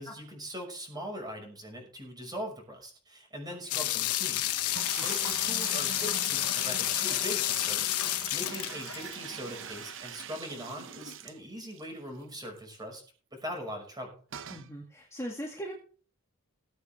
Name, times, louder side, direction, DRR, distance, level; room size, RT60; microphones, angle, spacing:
voice 1, 0.0-13.0 13.3-14.2, equal, 20° right, 1 dB, 5.9 m, -41 dB
sound 1, 3.7-9.5, left 14 dB, 85° left, 1.0 m, -30 dB
sound 2, 4.7-11.9 12.2-12.3 12.6-12.7 14.3-14.7, right 7 dB, 55° right, 0.9 m, -42 dB
voice 2, 14.5-15.7, equal, 15° left, -1 dB, 2.1 m, -39 dB
20.5 x 8.2 x 3.6 m, 0.40 s
head